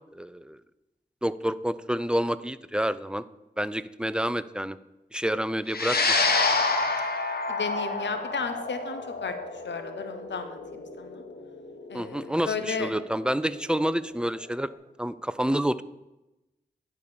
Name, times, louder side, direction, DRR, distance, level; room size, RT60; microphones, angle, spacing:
voice 1, 0.1-0.6 1.2-3.2 3.6-4.8 5.1-6.2 11.9-14.7 15.0-15.8, equal, 5° right, 15 dB, 0.4 m, -28 dB
sound 1, 5.7-14.2, left 3 dB, 60° left, 1.3 m, -29 dB
voice 2, 7.5-9.3 9.6-11.2 11.9-12.9, left 5 dB, 80° left, 8 dB, 0.9 m, -34 dB
10.5 x 4.3 x 6.9 m, 0.98 s
cardioid pair, 50°, 18 cm